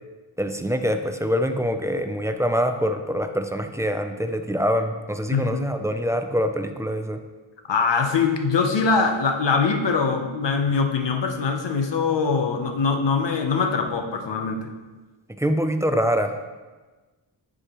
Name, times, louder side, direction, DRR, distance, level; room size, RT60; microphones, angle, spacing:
voice 1, 0.4-7.2 15.4-16.4, equal, 5° right, 7 dB, 0.4 m, -24 dB
voice 2, 5.3-5.7 7.7-14.7, left 5 dB, 65° left, 5 dB, 0.8 m, -23 dB
9.7 x 4.9 x 3.0 m, 1.3 s
wide cardioid pair, 90°, 47 cm